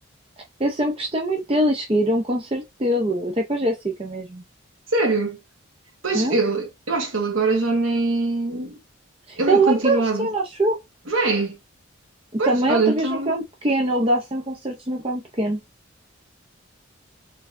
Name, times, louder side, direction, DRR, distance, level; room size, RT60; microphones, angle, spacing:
voice 1, 0.6-4.4 6.1-6.4 9.3-10.8 12.4-15.6, right 1 dB, 25° right, 0.7 m, -23 dB
voice 2, 4.9-5.4 6.0-8.7 9.4-10.3 11.1-11.6 12.4-13.3, right 3 dB, 75° right, 1.3 m, -23 dB
4.3 x 3.8 x 2.6 m
head